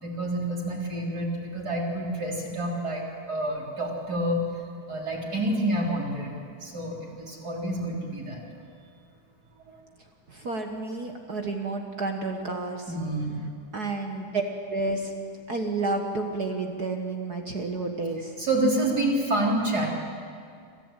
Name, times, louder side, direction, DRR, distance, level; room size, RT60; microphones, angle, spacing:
voice 1, 0.0-4.4 4.9-6.3 6.6-8.4 9.7-9.8 12.9-13.4 18.4-19.9, right 1 dB, 30° right, -1 dB, 3.8 m, -28 dB
voice 2, 10.3-12.9 13.7-14.4 14.7-15.1 15.5-18.3, right 3 dB, 50° right, 4 dB, 1.2 m, -30 dB
26.0 x 15.5 x 9.0 m, 2.3 s
omnidirectional pair, 3.6 m